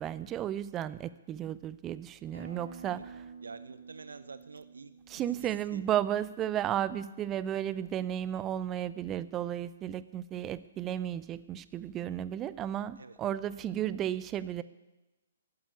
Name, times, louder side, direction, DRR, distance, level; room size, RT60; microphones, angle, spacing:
voice 1, 0.0-3.2 5.1-14.6, right 11 dB, 20° right, 17 dB, 0.4 m, -34 dB
Acoustic guitar, 2.3-7.5, right 4 dB, 85° right, 3.9 m, -51 dB
voice 2, 3.4-5.9 13.0-13.2, right 4 dB, 65° right, 13 dB, 0.6 m, -48 dB
13.0 x 9.6 x 8.5 m, 1.1 s
figure-of-eight pair, 125°, 0 cm